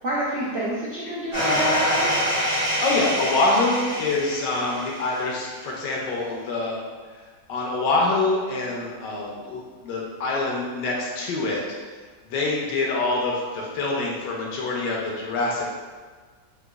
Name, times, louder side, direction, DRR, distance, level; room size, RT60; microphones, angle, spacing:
voice 1, 0.0-2.1, right 1 dB, 70° right, -8 dB, 0.6 m, -27 dB
sound 1, 1.3-5.3, equal, 35° right, 0.6 m, -26 dB
voice 2, 2.8-6.8 7.5-11.6 12.3-15.8, left 2 dB, 75° left, -2 dB, 1.2 m, -25 dB
4.7 x 2.2 x 2.3 m, 1.5 s
omnidirectional pair, 2.0 m